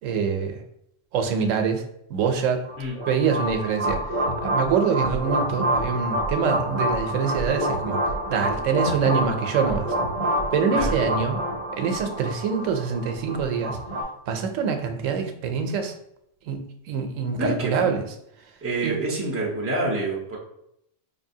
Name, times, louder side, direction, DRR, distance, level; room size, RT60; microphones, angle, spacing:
voice 1, 0.0-0.6 1.1-1.8 2.1-2.6 3.1-8.0 8.3-9.9 10.5-11.4 11.8-13.8 14.3-15.9 16.5-18.0 18.8-18.9, right 6 dB, 90° right, 5 dB, 1.0 m, -25 dB
sound 1, 2.7-14.0, right 1 dB, 45° right, 0.9 m, -27 dB
voice 2, 17.4-17.9 18.6-20.4, right 2 dB, 15° right, -3 dB, 0.7 m, -27 dB
4.8 x 2.7 x 2.7 m, 0.75 s
omnidirectional pair, 1.3 m